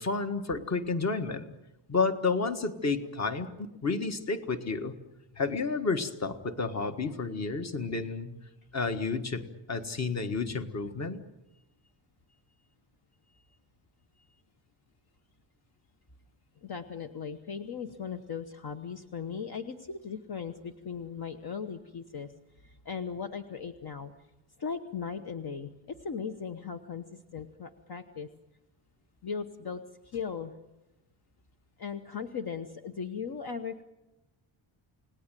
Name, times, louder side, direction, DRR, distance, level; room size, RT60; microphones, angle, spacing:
voice 1, 0.0-1.5 1.9-3.5 3.8-4.9 5.4-8.3 8.7-11.2, left 4 dB, 30° left, 8 dB, 1.7 m, -31 dB
voice 2, 16.6-24.1 24.6-25.7 26.0-28.3 29.2-30.5 31.8-33.8, left 6 dB, 50° left, 7 dB, 1.2 m, -38 dB
29.0 x 19.0 x 9.2 m, 0.99 s
wide cardioid pair, 170°, 50 cm